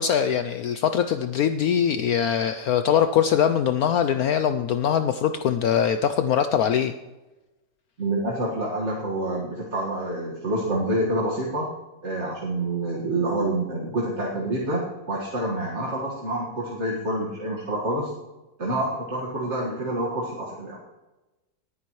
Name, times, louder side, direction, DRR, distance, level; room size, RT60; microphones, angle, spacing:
voice 1, 0.0-6.9, left 8 dB, 70° left, 9 dB, 0.9 m, -22 dB
voice 2, 8.0-11.7 12.0-18.1 18.6-20.8, right 1 dB, 40° right, -4 dB, 2.0 m, -27 dB
18.5 x 9.8 x 3.1 m, 1.1 s
omnidirectional pair, 1.9 m